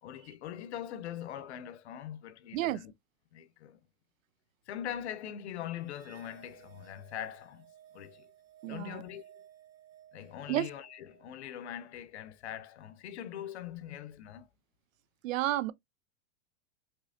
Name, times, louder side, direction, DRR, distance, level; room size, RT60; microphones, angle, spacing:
voice 1, 0.0-2.9 3.3-3.8 4.7-7.6 7.9-8.3 8.6-9.2 10.1-14.5, left 10 dB, 60° left, 0.7 m, -42 dB
sound 1, 5.9-12.4, right 11 dB, 25° right, 0.9 m, -58 dB
voice 2, 8.6-9.0 10.5-10.7 15.2-15.7, right 14 dB, 90° right, 0.6 m, -31 dB
5.3 x 3.0 x 2.7 m
supercardioid pair, 180°, 39 cm